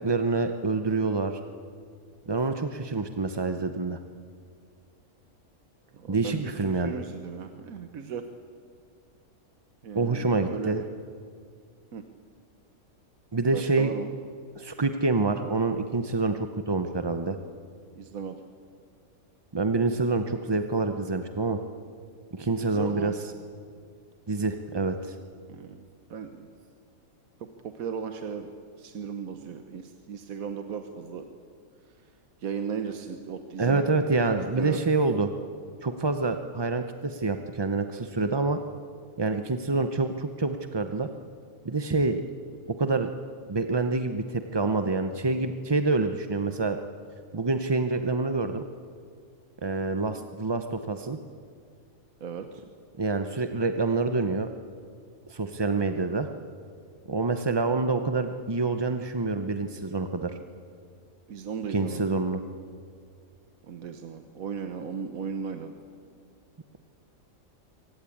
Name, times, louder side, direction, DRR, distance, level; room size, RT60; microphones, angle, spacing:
voice 1, 0.0-1.4 2.3-4.0 6.1-6.9 9.9-10.8 13.3-13.9 14.6-16.4 16.7-17.4 19.5-21.6 22.3-23.1 24.3-25.1 33.6-35.3 35.8-38.6 39.2-41.1 41.6-42.2 42.7-43.1 43.5-46.8 47.3-48.6 49.6-51.2 53.0-54.5 55.3-56.3 57.1-60.3 61.7-62.4, right 3 dB, 25° right, 7 dB, 0.5 m, -27 dB
voice 2, 5.9-8.2 9.8-10.8 11.9-12.0 13.5-14.1 17.9-18.4 22.5-23.2 25.5-26.5 27.4-28.5 28.8-31.2 31.8-32.1 32.4-33.8 34.6-34.8 52.2-52.6 61.3-62.1 63.6-65.8, right 6 dB, 75° right, 7 dB, 1.4 m, -36 dB
24.5 x 18.0 x 8.5 m, 2.2 s
omnidirectional pair, 1.5 m